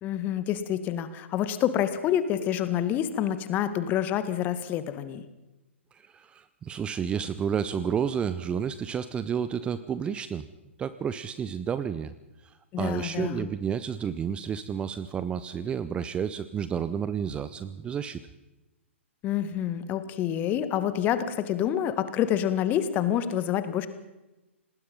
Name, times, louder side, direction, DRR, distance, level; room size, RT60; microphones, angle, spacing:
voice 1, 0.0-5.2 12.7-13.5 19.2-23.9, left 10 dB, 25° left, 12 dB, 1.7 m, -27 dB
voice 2, 5.9-10.5 10.8-12.1 12.4-18.2, right 7 dB, 15° right, 14 dB, 0.7 m, -31 dB
26.5 x 19.5 x 5.5 m, 1.0 s
figure-of-eight pair, 120°, 7 cm